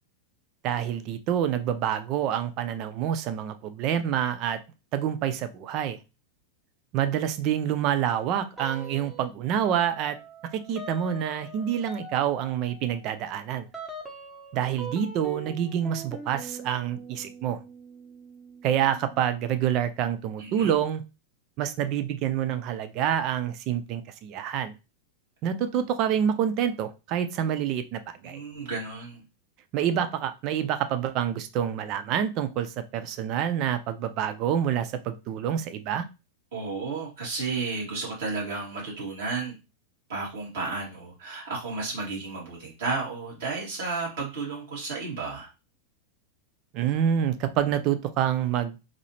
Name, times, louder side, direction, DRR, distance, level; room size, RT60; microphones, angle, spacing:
voice 1, 0.6-4.6 4.9-6.0 6.9-10.2 10.5-13.7 14.5-17.6 18.6-21.0 21.6-24.7 25.4-28.4 29.7-36.0 46.7-48.8, right 9 dB, 40° right, 11 dB, 0.5 m, -27 dB
sound 1, 8.6-9.3 9.6-20.0, right 2 dB, 5° right, 0.9 m, -43 dB
voice 2, 20.4-20.8 28.2-29.2 36.5-39.5 40.1-45.5, right 4 dB, 55° right, -4 dB, 2.3 m, -32 dB
3.9 x 2.8 x 3.1 m, 0.28 s
figure-of-eight pair, 90°, 0 cm